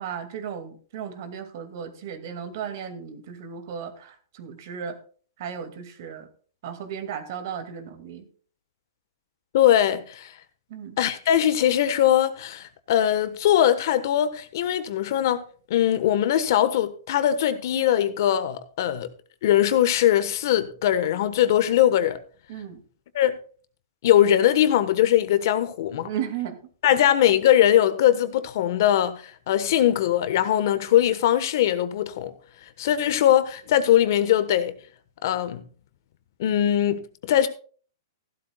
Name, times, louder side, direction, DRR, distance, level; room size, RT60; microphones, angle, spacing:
voice 1, 0.0-5.0 5.4-6.3 6.6-8.3 10.7-11.0 22.5-22.8 26.0-26.6 26.9-27.0, right 8 dB, 50° right, 2.2 m, -35 dB
voice 2, 9.5-10.3 11.0-15.4 15.7-19.1 19.4-22.2 23.1-23.4 24.0-26.1 26.8-32.3 32.8-34.7 35.2-35.6 36.4-37.5, left 11 dB, 55° left, 1.3 m, -21 dB
15.5 x 12.0 x 2.3 m
hypercardioid pair, 155°, 2 cm